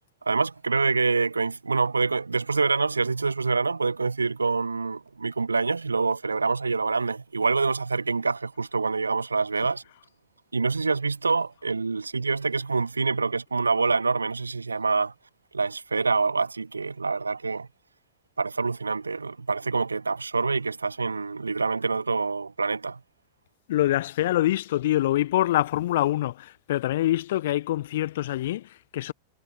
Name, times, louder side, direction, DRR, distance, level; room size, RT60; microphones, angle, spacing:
voice 1, 0.2-9.8 10.5-15.1 15.5-17.7 18.4-23.0, right 4 dB, 80° right, 0.4 m, -26 dB
voice 2, 23.7-29.1, left 14 dB, 55° left, 1.4 m, -25 dB
figure-of-eight pair, 90°, 0 cm